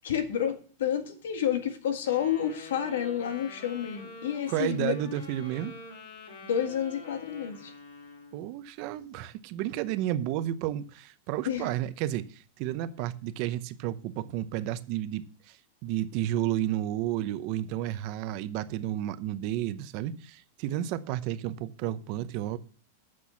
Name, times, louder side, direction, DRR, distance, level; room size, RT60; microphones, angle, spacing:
voice 1, 0.0-5.0 6.5-7.7 11.4-11.7, left 9 dB, 85° left, 1.8 m, -30 dB
Wind instrument woodwind instrument, 2.0-8.5, left 4 dB, 60° left, 5.5 m, -46 dB
voice 2, 4.5-5.7 8.3-15.6 15.8-22.6, right 13 dB, 45° right, 0.7 m, -32 dB
8.6 x 6.2 x 7.1 m
supercardioid pair, 150°, 0 cm